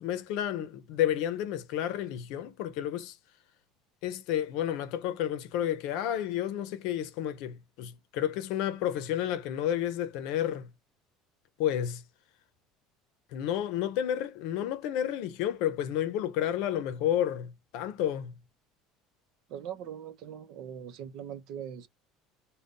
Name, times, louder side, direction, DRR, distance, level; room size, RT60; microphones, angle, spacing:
voice 1, 0.0-3.1 4.0-10.7 11.6-12.0 13.3-18.3, left 11 dB, 65° left, 0.6 m, -31 dB
voice 2, 19.5-21.9, right 9 dB, 60° right, 0.7 m, -41 dB
5.2 x 2.2 x 2.6 m
cardioid pair, 150°, 0 cm